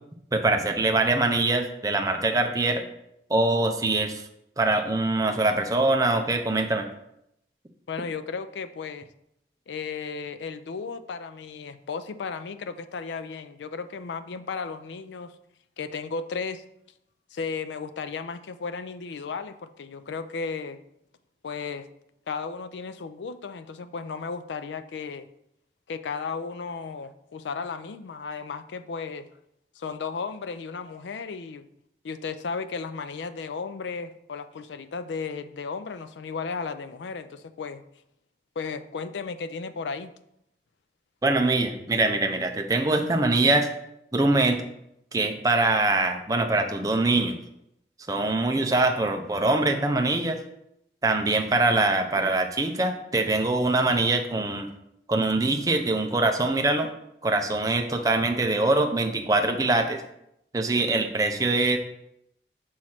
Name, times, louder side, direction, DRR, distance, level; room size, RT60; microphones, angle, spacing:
voice 1, 0.3-2.8 3.3-4.2 4.6-6.9 41.2-43.7 44.1-44.6 45.1-47.3 48.1-50.4 51.0-54.7 55.1-56.9 57.2-60.0 60.5-61.8, right 2 dB, 20° right, 4 dB, 0.5 m, -23 dB
voice 2, 7.9-9.1 9.7-15.3 15.8-16.6 17.3-20.8 21.4-21.9 22.3-25.3 25.9-29.3 29.8-31.7 32.0-37.8 38.6-40.1, left 5 dB, 90° left, 11 dB, 0.4 m, -34 dB
6.3 x 3.0 x 5.7 m, 0.79 s
head